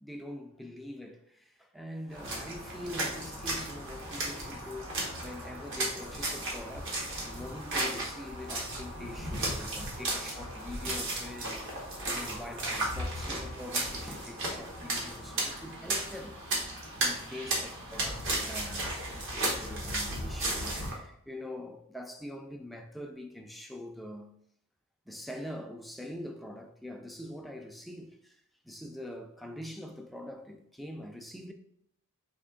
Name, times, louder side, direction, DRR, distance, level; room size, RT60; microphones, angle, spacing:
voice 1, 0.0-4.9 5.2-6.9 7.2-16.4 17.0-24.3 25.1-28.4 28.6-31.5, left 1 dB, ahead, 0.4 m, -44 dB
sound 1, 2.1-20.9, right 1 dB, 60° right, 1.2 m, -35 dB
4.3 x 2.8 x 3.7 m
head